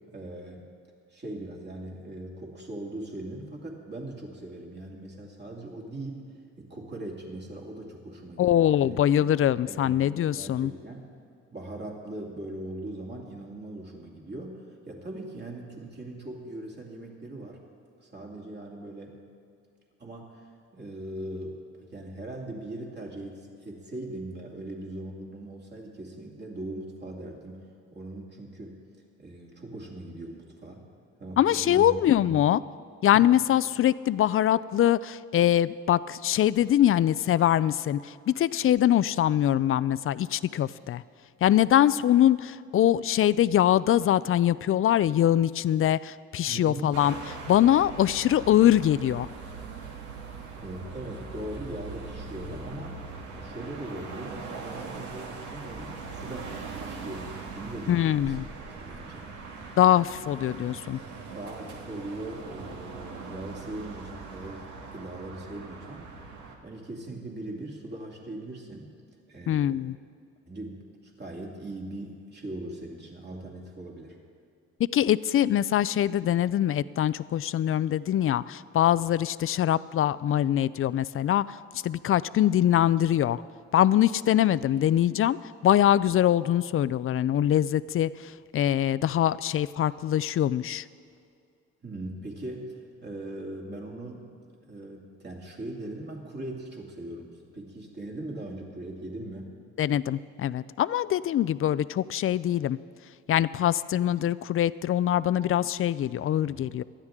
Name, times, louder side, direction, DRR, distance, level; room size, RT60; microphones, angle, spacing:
voice 1, 0.1-0.7 1.1-6.2 6.6-8.9 9.6-9.9 10.3-11.1 11.5-17.6 18.0-19.2 20.0-27.6 27.9-28.8 29.2-30.9 31.2-32.4 33.1-33.3 46.4-47.0 50.6-53.0 53.3-56.5 56.8-58.4 58.8-59.3 61.4-66.2 66.6-69.0 69.3-69.8 70.5-74.2 91.8-99.5 106.4-106.7, right 1 dB, 35° right, -1 dB, 2.5 m, -40 dB
voice 2, 8.4-10.7 31.4-32.6 33.0-41.0 41.4-47.1 47.5-49.3 57.9-58.4 59.8-61.0 69.5-69.9 74.9-81.4 81.8-83.4 83.7-85.4 85.6-88.1 88.5-90.8 99.8-102.8 103.3-106.8, left 11 dB, 45° left, 18 dB, 0.4 m, -23 dB
sound 1, 46.9-66.6, right 4 dB, 75° right, 1.8 m, -41 dB
19.0 x 12.5 x 3.7 m, 2.4 s
cardioid pair, 90°, 30 cm